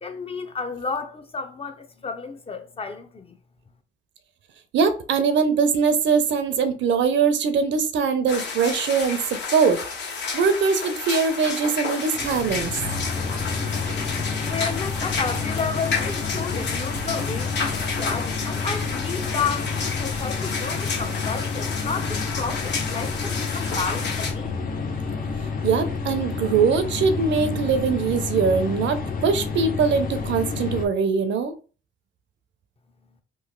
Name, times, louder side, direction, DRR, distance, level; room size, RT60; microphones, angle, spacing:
voice 1, 0.0-3.4 14.0-24.6, left 5 dB, 30° left, 0.6 m, -32 dB
voice 2, 4.7-9.8 10.3-12.7 25.6-31.5, right 5 dB, 65° right, 0.6 m, -22 dB
sound 1, 8.3-24.3, left 4 dB, 60° left, 1.2 m, -31 dB
sound 2, 12.1-30.9, left 4 dB, 45° left, 0.9 m, -29 dB
3.2 x 2.5 x 3.7 m
cardioid pair, 90°, 20 cm